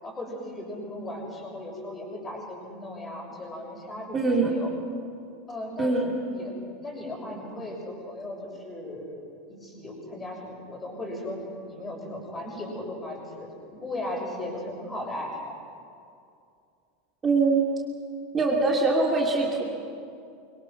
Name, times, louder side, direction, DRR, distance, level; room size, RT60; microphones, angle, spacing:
voice 1, 0.0-4.7 5.5-6.0 6.3-6.5 6.8-9.2 9.5-11.4 11.7-15.6, left 1 dB, 20° left, 0 dB, 6.8 m, -37 dB
voice 2, 4.1-4.5 5.8-6.2 17.2-17.7 18.3-19.6, right 3 dB, 20° right, -1 dB, 3.1 m, -23 dB
24.5 x 23.5 x 6.1 m, 2.4 s
figure-of-eight pair, 80°, 0 cm